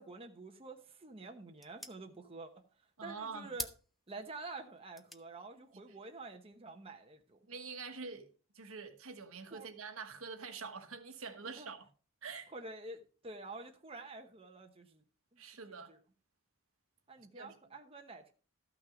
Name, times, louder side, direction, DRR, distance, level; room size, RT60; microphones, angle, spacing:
voice 1, 0.0-2.6 3.0-3.7 4.1-7.4 9.5-9.7 11.6-11.7 12.5-15.0 15.3-15.4 15.7-16.0 17.1-18.3, right 3 dB, 25° right, 1.0 m, -48 dB
sound 1, 0.6-7.4, equal, ahead, 0.6 m, -51 dB
voice 2, 3.0-3.5 7.5-8.3 8.5-11.9 12.2-12.5 15.4-15.9 17.3-17.5, right 4 dB, 70° right, 1.3 m, -45 dB
13.0 x 6.2 x 5.0 m
head